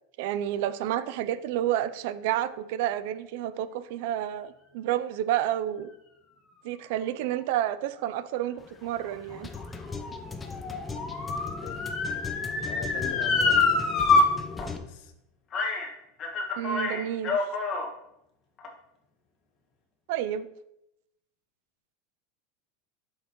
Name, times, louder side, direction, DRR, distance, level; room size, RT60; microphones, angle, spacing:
voice 1, 0.2-5.9 6.6-9.5 16.6-17.4 20.1-20.5, right 11 dB, 70° right, 14 dB, 0.4 m, -30 dB
sound 1, 8.6-14.8, left 4 dB, 15° left, 0.7 m, -38 dB
Motor vehicle (road) / Siren, 9.0-14.2 14.6-14.7 15.5-15.9 16.2-17.9 18.6-18.7, left 3 dB, 35° left, 1.6 m, -26 dB
voice 2, 11.6-12.2 12.5-14.1 14.8-15.0, left 7 dB, 65° left, 8 dB, 1.0 m, -42 dB
8.2 x 6.4 x 3.0 m, 0.84 s
supercardioid pair, 115°, 0 cm